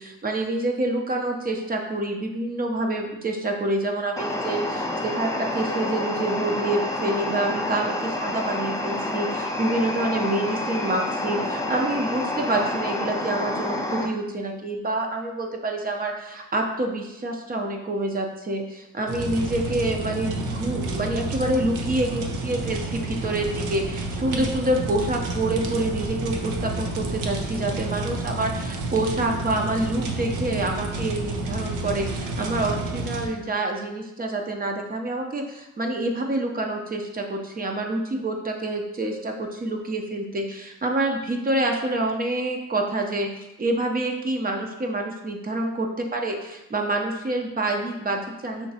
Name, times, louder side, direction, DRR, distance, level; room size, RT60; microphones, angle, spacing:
voice 1, 0.0-43.3 43.6-48.7, right 2 dB, 30° right, 2 dB, 0.7 m, -27 dB
sound 1, 4.2-14.1, left 1 dB, 10° left, 0.5 m, -28 dB
sound 2, 19.1-33.3, right 2 dB, 85° right, 0.7 m, -30 dB
5.8 x 2.9 x 2.8 m, 0.93 s
cardioid pair, 90°, 30 cm